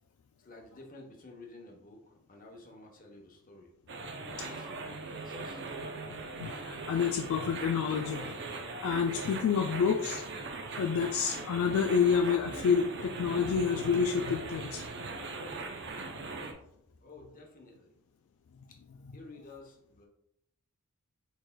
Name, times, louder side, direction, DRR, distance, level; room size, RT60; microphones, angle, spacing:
voice 1, 0.4-3.7 4.2-5.6 17.0-17.9 18.7-18.8 19.1-20.1, left 2 dB, 40° left, 1 dB, 0.9 m, -52 dB
sound 1, 3.9-16.5, right 3 dB, 55° right, 0.6 m, -40 dB
voice 2, 6.4-8.2 8.8-10.3 10.8-14.8, left 6 dB, 65° left, 4 dB, 0.3 m, -28 dB
4.7 x 4.4 x 2.2 m, 0.73 s
head